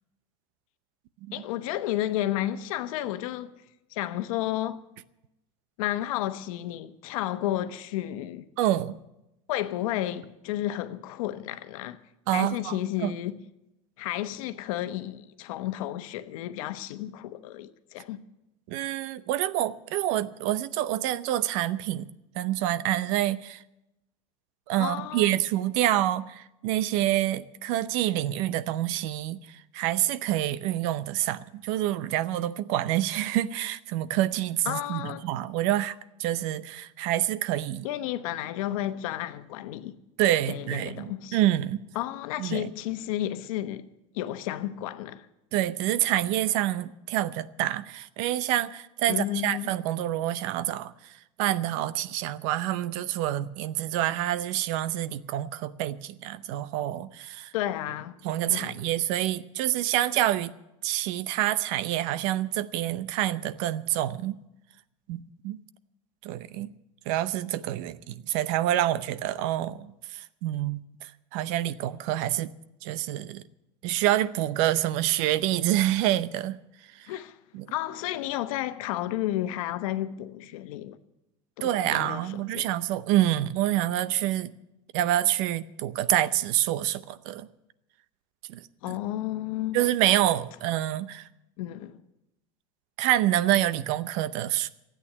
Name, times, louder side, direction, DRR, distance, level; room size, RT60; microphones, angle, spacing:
voice 1, 1.3-3.5 3.9-4.8 5.8-8.4 9.5-12.0 12.3-13.4 14.0-18.2 24.8-25.3 34.6-35.3 37.8-40.0 40.5-41.4 41.9-43.9 44.1-45.3 49.1-49.7 57.5-58.1 58.5-58.8 77.1-77.4 77.7-81.0 81.6-82.7 88.8-89.8 91.6-92.0, left 13 dB, 80° left, 1.0 m, -32 dB
voice 2, 8.6-9.0 12.3-13.2 18.7-22.1 22.4-23.6 24.7-37.9 40.2-41.8 42.4-42.7 45.5-57.5 58.2-60.5 60.8-64.4 65.1-65.6 66.2-66.7 67.1-72.5 72.8-73.4 73.8-76.6 76.9-77.1 77.5-77.7 81.6-84.5 84.9-87.5 88.5-89.0 89.7-91.3 93.0-94.7, right 13 dB, 65° right, 0.7 m, -27 dB
13.0 x 8.9 x 9.7 m
supercardioid pair, 130°, 18 cm